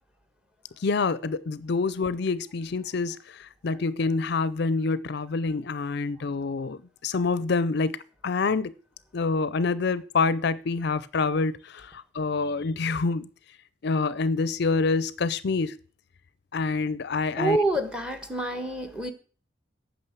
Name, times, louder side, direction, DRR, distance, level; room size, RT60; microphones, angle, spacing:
voice 1, 0.8-8.7 9.1-13.3 13.8-15.8 16.5-17.6, left 4 dB, 60° left, 0.5 m, -27 dB
voice 2, 17.3-19.1, right 2 dB, 5° right, 1.4 m, -27 dB
9.0 x 6.2 x 7.9 m
head